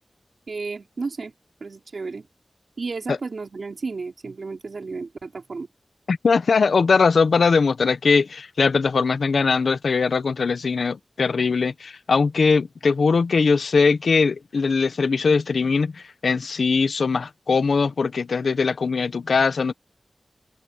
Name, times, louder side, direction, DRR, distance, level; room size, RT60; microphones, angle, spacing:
voice 1, 0.5-1.3 1.6-2.3 2.8-5.7, right 4 dB, 75° right, 3.4 m, -32 dB
voice 2, 6.1-19.7, left 4 dB, 90° left, 1.0 m, -21 dB
cardioid pair, 50°, 0 cm